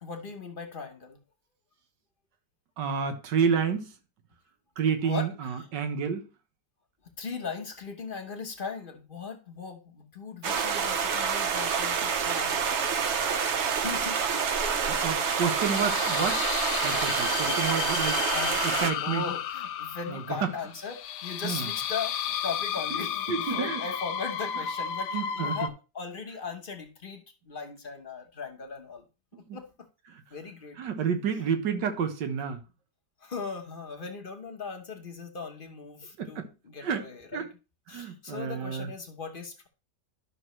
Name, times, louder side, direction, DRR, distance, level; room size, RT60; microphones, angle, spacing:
voice 1, 0.0-1.2 5.0-5.3 5.6-5.7 7.0-13.0 13.7-14.9 17.1-17.6 18.3-29.1 29.3-29.6 30.3-30.8 31.3-31.5 33.2-37.5 37.9-39.7, left 5 dB, 35° left, 1.1 m, -39 dB
voice 2, 2.8-3.9 4.8-6.3 14.9-16.4 16.8-18.3 18.6-19.2 20.1-20.2 21.4-21.7 23.3-23.8 25.1-25.6 29.5-29.6 30.1-30.2 30.8-32.6 36.2-36.5 36.8-37.1 37.3-37.5 37.9-38.9, right 6 dB, 85° right, 1.7 m, -30 dB
sound 1, 10.4-18.9, right 6 dB, 55° right, 0.9 m, -27 dB
sound 2, 12.7-13.6 14.5-25.7, left 9 dB, 80° left, 1.2 m, -33 dB
11.5 x 6.1 x 3.1 m
omnidirectional pair, 1.9 m